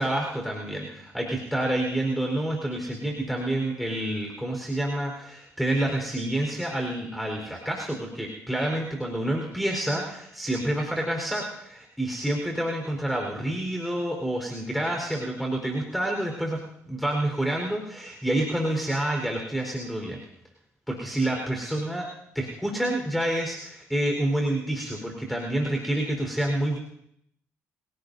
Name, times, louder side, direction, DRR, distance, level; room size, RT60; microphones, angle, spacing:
voice 1, 0.0-20.2 20.9-22.1 22.3-26.8, right 1 dB, ahead, 0 dB, 4.5 m, -28 dB
25.5 x 17.5 x 2.8 m, 0.74 s
supercardioid pair, 55°, 7 cm